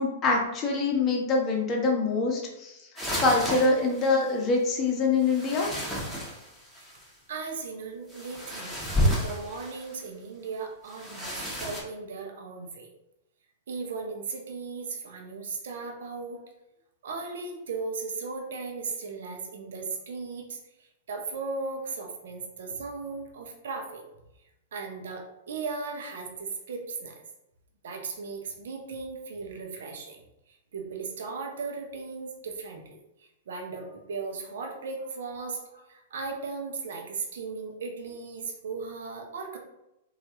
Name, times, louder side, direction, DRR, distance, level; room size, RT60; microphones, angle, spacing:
voice 1, 0.0-2.8 3.2-5.7, left 3 dB, 30° left, -1 dB, 0.8 m, -25 dB
sound 1, 3.0-4.3 5.2-7.1 8.1-10.0 10.9-11.8, equal, ahead, 0.9 m, -31 dB
voice 2, 7.3-12.9 13.7-16.4 17.0-24.0 24.7-27.2 27.8-30.2 30.5-39.6, right 4 dB, 70° right, 2 dB, 0.6 m, -37 dB
3.1 x 2.4 x 2.8 m, 0.90 s
hypercardioid pair, 110°, 0 cm